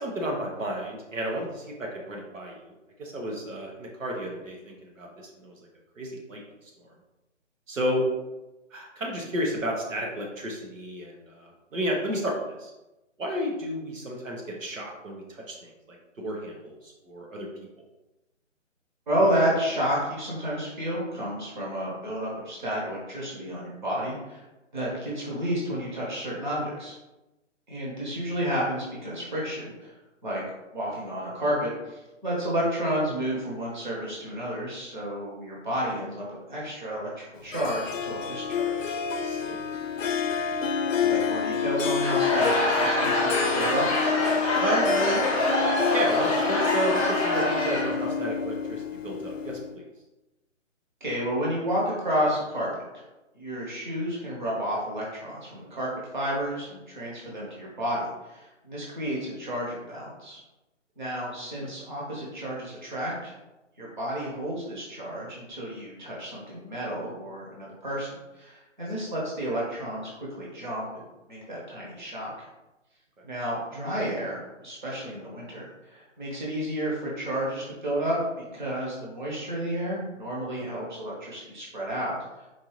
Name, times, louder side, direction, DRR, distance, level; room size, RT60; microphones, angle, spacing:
voice 1, 0.0-2.7 3.0-5.6 6.0-6.4 6.8-6.9 7.7-8.1 8.7-12.7 13.2-17.5 39.2-39.6 44.5-45.3 45.9-49.8 61.6-61.7 73.2-73.3, equal, 80° right, -1 dB, 1.1 m, -32 dB
voice 2, 19.1-24.4 24.7-26.9 27.7-29.9 30.2-30.4 30.7-39.0 41.0-43.9 51.0-53.0 53.3-55.9 56.1-60.4 61.0-63.3 63.8-72.5 73.2-82.5, equal, 40° right, -5 dB, 1.1 m, -31 dB
Harp, 37.5-49.7, left 7 dB, 80° left, 0.6 m, -29 dB
Laughter / Crowd, 41.8-48.1, left 1 dB, 25° left, 0.8 m, -25 dB
4.4 x 2.6 x 3.1 m, 1.0 s
hypercardioid pair, 175°, 38 cm